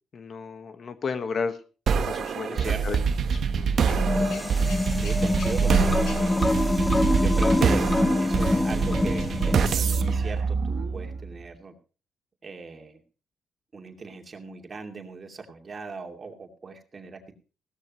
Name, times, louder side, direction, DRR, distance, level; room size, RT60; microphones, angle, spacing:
voice 1, 0.1-1.6 2.1-3.0 3.5-3.9, left 5 dB, 50° left, 9 dB, 1.4 m, -33 dB
sound 1, 1.9-11.3, right 6 dB, 60° right, 1.1 m, -25 dB
voice 2, 2.4-3.0 5.0-6.3 7.0-7.9 8.2-11.7 12.4-13.0 13.7-17.3, right 4 dB, 35° right, 3 dB, 2.6 m, -38 dB
Male speech man speaking / Vehicle / Engine starting, 3.9-9.8, left 3 dB, 70° left, 4.0 m, -46 dB
sound 2, 3.9-10.2, left 2 dB, 15° left, 0.7 m, -25 dB
17.0 x 13.0 x 3.1 m, 0.35 s
cardioid pair, 90°, 0 cm